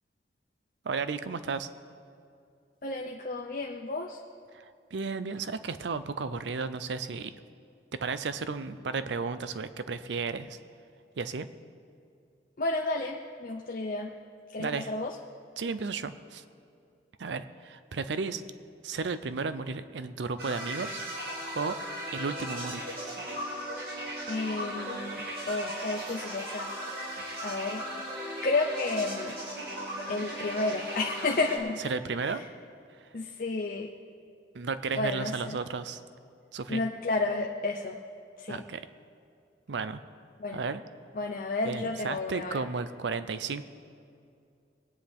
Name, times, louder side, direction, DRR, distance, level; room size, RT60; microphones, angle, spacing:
voice 1, 0.8-1.7 4.5-7.3 7.9-10.6 11.2-11.5 14.6-14.9 15.6-16.4 17.2-18.4 18.8-21.0 21.5-21.8 22.1-22.8 31.8-32.4 33.0-33.1 34.5-36.0 36.5-36.8 38.5-38.8 39.7-40.0 40.5-40.8 41.6-43.6, right 4 dB, 85° right, 12 dB, 0.5 m, -33 dB
voice 2, 2.8-4.2 12.6-14.1 14.5-15.1 24.3-26.7 27.4-27.8 28.4-29.3 30.1-31.9 33.1-33.9 35.0-35.6 36.7-38.0 38.4-38.6 40.4-40.6 41.2-42.5, left 3 dB, 50° left, 0 dB, 0.6 m, -31 dB
sound 1, 20.4-31.6, right 1 dB, 60° right, 2.3 m, -37 dB
22.0 x 9.6 x 3.5 m, 2.4 s
head